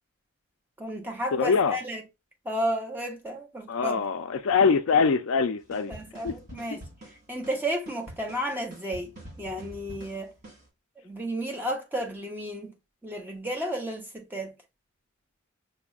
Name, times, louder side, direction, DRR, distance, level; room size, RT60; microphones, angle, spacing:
voice 1, 0.8-2.0 2.4-4.1 5.9-10.3 11.0-12.7 13.0-14.5, equal, 10° right, 0.6 m, -33 dB
voice 2, 1.3-1.8 3.7-5.9 6.2-6.3 6.7-6.8, left 5 dB, 65° left, 0.4 m, -23 dB
sound 1, 5.7-10.7, right 1 dB, 35° right, 2.2 m, -46 dB
5.8 x 2.1 x 2.3 m
head